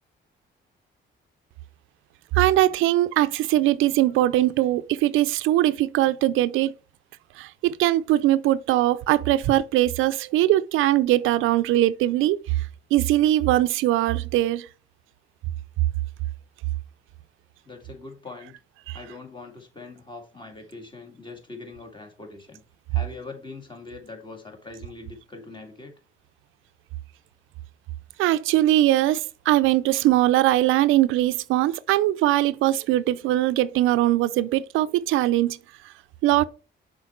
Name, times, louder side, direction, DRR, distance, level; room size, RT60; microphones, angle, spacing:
voice 1, 2.3-6.7 7.4-12.6 12.9-14.7 18.9-19.0 28.2-35.6 36.2-36.4, right 14 dB, 90° right, 0.4 m, -21 dB
voice 2, 17.7-18.6 18.9-22.6 22.9-25.9, left 3 dB, 25° left, 2.2 m, -42 dB
6.4 x 4.5 x 4.3 m
cardioid pair, 90°, 20 cm